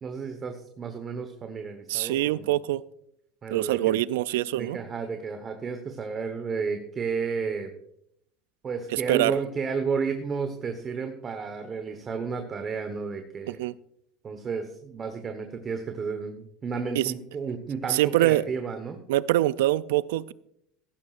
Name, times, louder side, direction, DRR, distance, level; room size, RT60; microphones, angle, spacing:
voice 1, 0.0-2.6 3.4-4.0 4.6-7.8 8.6-13.6 14.2-19.0, right 5 dB, 30° right, 6 dB, 1.1 m, -32 dB
voice 2, 1.9-2.8 3.5-4.8 8.9-9.4 13.5-13.7 17.0-17.1 17.9-18.4 19.1-20.3, right 15 dB, 85° right, 19 dB, 0.4 m, -24 dB
15.0 x 12.0 x 2.5 m, 0.74 s
supercardioid pair, 110°, 0 cm